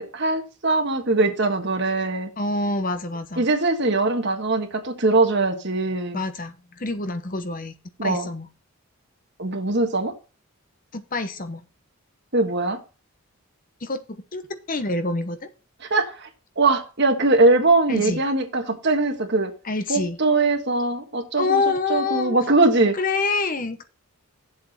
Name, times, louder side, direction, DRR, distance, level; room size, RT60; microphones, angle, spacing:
voice 1, 0.0-2.3 3.4-6.2 8.0-8.3 9.4-10.1 12.3-12.8 15.9-16.3 16.6-19.5 19.9-21.6 21.9-23.0, right 2 dB, 50° right, 6 dB, 1.5 m, -21 dB
voice 2, 2.4-3.5 6.1-7.7 8.0-8.5 10.9-11.6 13.8-15.5 17.9-18.2 19.6-20.2 21.4-22.4 22.9-23.8, left 3 dB, 40° left, 10 dB, 1.0 m, -26 dB
8.3 x 7.6 x 4.3 m, 0.32 s
head